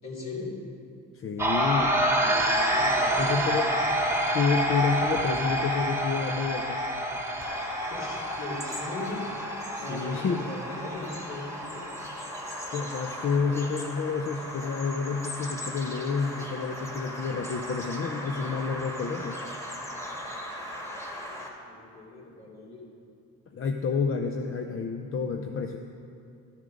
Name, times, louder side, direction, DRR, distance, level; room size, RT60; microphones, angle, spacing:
voice 1, 0.0-0.5 2.2-4.0 7.9-9.3 9.8-11.8 20.6-22.8, left 2 dB, 60° left, -4 dB, 3.0 m, -39 dB
voice 2, 1.1-2.0 3.2-3.7 4.3-6.8 9.7-10.4 12.7-19.4 23.5-25.8, left 5 dB, 45° left, 4 dB, 0.6 m, -29 dB
sound 1, 1.4-13.4, right 1 dB, 10° right, 1.1 m, -28 dB
Bird vocalization bird call bird song, 7.4-21.5, equal, 10° left, 1.6 m, -38 dB
13.0 x 7.3 x 5.2 m, 2.6 s
cardioid pair, 90°, 30 cm